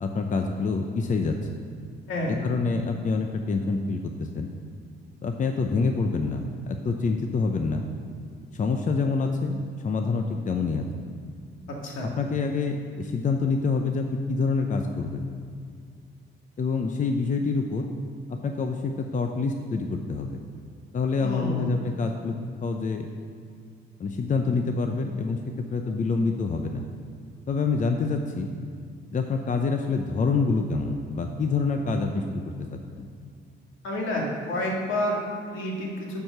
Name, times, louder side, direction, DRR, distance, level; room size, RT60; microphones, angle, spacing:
voice 1, 0.0-1.4 2.3-4.5 5.2-7.9 8.5-10.9 12.2-15.3 16.6-17.8 18.3-20.4 20.9-22.3 22.6-23.1 24.0-25.4 25.7-26.8 27.5-28.5 29.1-32.4 33.0-33.1, left 4 dB, 40° left, 4 dB, 0.7 m, -26 dB
voice 2, 11.8-12.1 21.2-21.7 33.8-36.2, left 1 dB, 80° left, -2 dB, 2.1 m, -29 dB
10.0 x 4.8 x 6.7 m, 2.2 s
cardioid pair, 90°, 20 cm